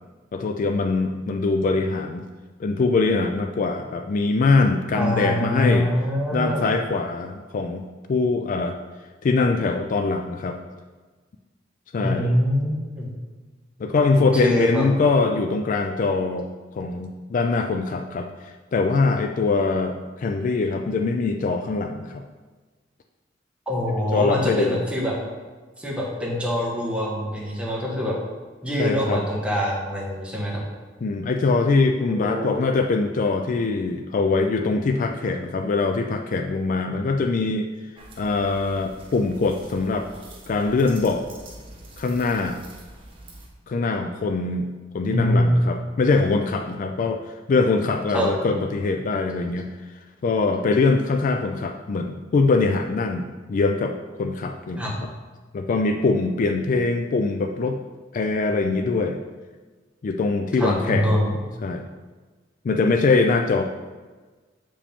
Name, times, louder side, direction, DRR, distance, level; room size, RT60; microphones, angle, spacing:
voice 1, 0.3-2.3 2.6-5.9 6.3-7.8 8.1-8.8 9.2-10.6 11.9-12.3 13.8-16.5 16.8-22.2 24.1-24.8 28.8-29.2 31.0-37.7 38.2-40.1 40.5-41.2 42.0-42.6 43.7-44.7 44.9-47.2 47.5-49.7 50.2-55.1 55.5-57.8 58.1-59.2 60.0-61.2 61.6-61.8 62.6-63.6, left 3 dB, 45° left, 5 dB, 0.3 m, -23 dB
voice 2, 4.9-6.7 12.0-13.1 14.2-14.8 23.7-25.1 25.8-28.1 28.6-30.6 32.0-32.6 45.1-45.5 48.1-48.3 54.8-54.9 60.6-61.3, equal, 5° right, -3 dB, 1.3 m, -24 dB
sound 1, 38.0-43.5, right 1 dB, 30° right, 1.2 m, -45 dB
7.1 x 4.9 x 3.5 m, 1.3 s
head